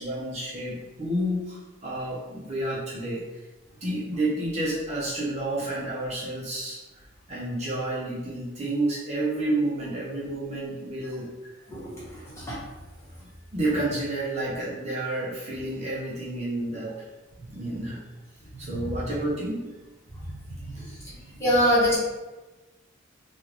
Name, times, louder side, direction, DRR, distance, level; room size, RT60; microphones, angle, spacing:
voice 1, 0.0-3.2 3.8-6.8 7.3-11.5 13.2-16.9 17.5-18.0 18.6-19.7 20.6-21.4, right 1 dB, 35° right, -6 dB, 0.7 m, -30 dB
voice 2, 21.4-22.0, equal, 15° left, -8 dB, 1.0 m, -21 dB
3.2 x 2.4 x 3.2 m, 1.1 s
head